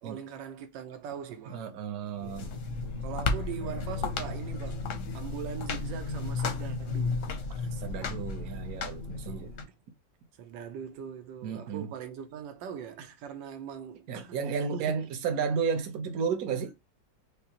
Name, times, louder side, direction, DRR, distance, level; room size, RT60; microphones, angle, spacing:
voice 1, 0.0-1.8 2.2-4.9 5.1-7.2 9.3-9.7 10.4-14.4 14.7-14.9, right 7 dB, 85° right, 1.4 m, -41 dB
voice 2, 1.5-2.5 7.7-9.5 11.4-11.9 14.1-16.7, right 6 dB, 60° right, 1.1 m, -32 dB
sound 1, 2.2-9.6, left 4 dB, 65° left, 0.8 m, -33 dB
5.1 x 2.2 x 2.8 m
omnidirectional pair, 2.0 m